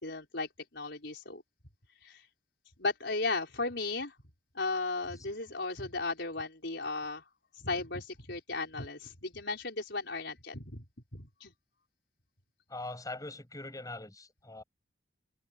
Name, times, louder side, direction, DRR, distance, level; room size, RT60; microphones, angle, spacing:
voice 1, 0.0-1.4 2.0-2.3 2.8-4.2 4.5-7.3 7.5-10.8 11.1-11.5, left 3 dB, 65° left, 5.8 m, -35 dB
voice 2, 12.7-14.6, left 2 dB, 20° left, 7.1 m, -42 dB
head